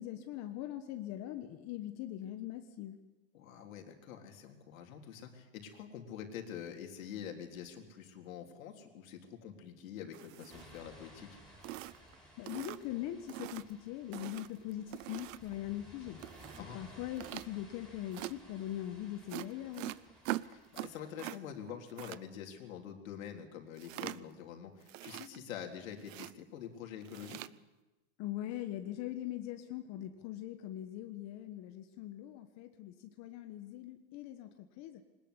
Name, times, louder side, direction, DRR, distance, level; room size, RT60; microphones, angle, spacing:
voice 1, 0.0-3.0 12.4-19.9 28.2-35.0, left 13 dB, 40° left, 7 dB, 1.4 m, -42 dB
voice 2, 3.3-11.3 16.6-16.8 20.4-27.4, left 8 dB, 80° left, 3 dB, 4.0 m, -46 dB
sound 1, 10.1-10.8 11.2-11.3 11.6-12.1 12.5-13.0 13.3-13.7 14.1-15.6 16.2-16.6 17.2-17.5 18.1-18.3 19.3-21.4 21.6-22.2 23.8-24.4 24.8-25.6 26.0-26.3 27.0-27.5, right 17 dB, 70° right, 0.8 m, -43 dB
sound 2, 10.5-21.1, equal, ahead, 6.2 m, -58 dB
21.5 x 20.0 x 8.3 m, 1.1 s
supercardioid pair, 140°, 41 cm